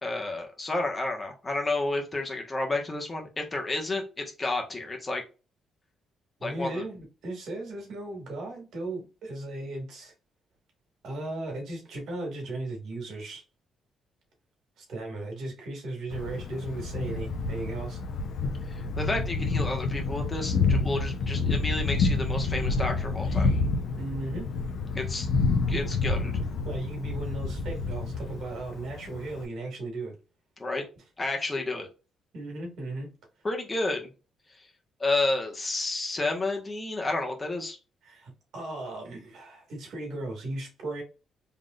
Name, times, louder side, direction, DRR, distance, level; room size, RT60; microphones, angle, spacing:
voice 1, 0.0-5.2 6.4-6.8 18.7-23.5 24.9-25.3 25.7-26.3 30.6-30.9 31.2-31.9 33.4-34.1 34.6-34.7 35.0-37.8, left 2 dB, 25° left, 1.3 m, -31 dB
voice 2, 6.4-10.1 11.0-13.4 14.8-18.0 24.0-24.5 26.1-26.3 26.7-30.2 31.5-31.6 32.3-33.1 38.0-41.0, right 2 dB, 70° right, 2.1 m, -36 dB
Thunder, 16.1-29.4, left 3 dB, 75° left, 0.9 m, -28 dB
4.1 x 3.5 x 2.5 m
cardioid pair, 90°, 0 cm